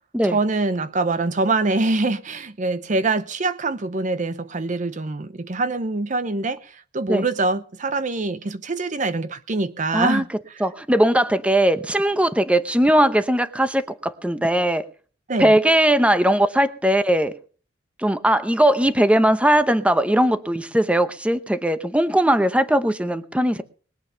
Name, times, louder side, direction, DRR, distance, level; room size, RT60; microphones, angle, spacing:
voice 1, 0.2-10.7 15.3-15.5, right 3 dB, 40° right, 0.6 m, -24 dB
voice 2, 9.9-10.2 10.6-14.8 15.4-17.3 18.0-23.6, right 1 dB, 5° right, 0.8 m, -19 dB
21.0 x 8.8 x 5.6 m
head